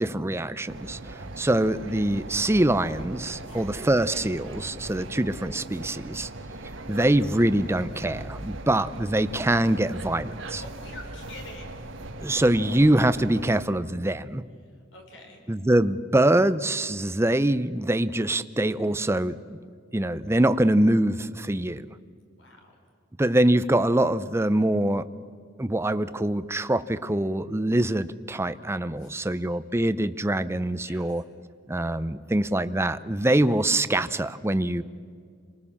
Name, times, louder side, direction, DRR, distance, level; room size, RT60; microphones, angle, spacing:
voice 1, 0.0-6.3 6.9-10.6 12.2-14.4 15.5-19.6 19.9-21.9 23.2-25.0 25.6-31.2 31.7-34.8, right 1 dB, 15° right, 13 dB, 0.6 m, -24 dB
sound 1, 0.7-13.6, right 2 dB, 85° right, 1.5 m, -39 dB
voice 2, 10.5-11.8 14.9-15.4 22.4-22.7 29.0-29.4 30.8-31.2, left 2 dB, 75° left, 2 dB, 5.2 m, -46 dB
29.5 x 20.0 x 7.2 m, 2.1 s
head